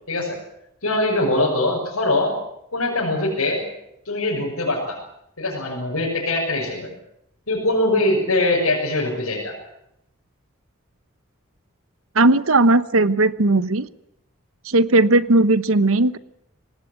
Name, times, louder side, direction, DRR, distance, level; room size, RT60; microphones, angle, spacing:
voice 1, 0.8-2.3 2.7-3.6 4.0-5.0 5.4-6.9 7.5-9.5, left 2 dB, 90° left, -2 dB, 6.4 m, -22 dB
voice 2, 12.1-13.9 14.6-16.2, right 2 dB, 75° right, 14 dB, 1.0 m, -17 dB
25.0 x 19.0 x 8.3 m, 0.82 s
head